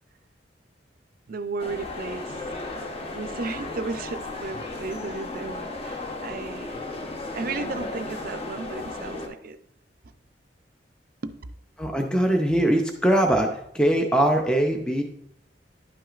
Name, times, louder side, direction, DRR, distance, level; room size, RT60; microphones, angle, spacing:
voice 1, 1.3-2.4 3.1-6.8 7.3-9.6 11.2-11.4, right 3 dB, 55° right, 12 dB, 0.5 m, -34 dB
sound 1, 1.6-9.3, left 2 dB, 35° left, 0.9 m, -35 dB
voice 2, 11.8-15.0, right 1 dB, 5° left, 3 dB, 0.5 m, -22 dB
10.5 x 6.0 x 2.4 m, 0.74 s
head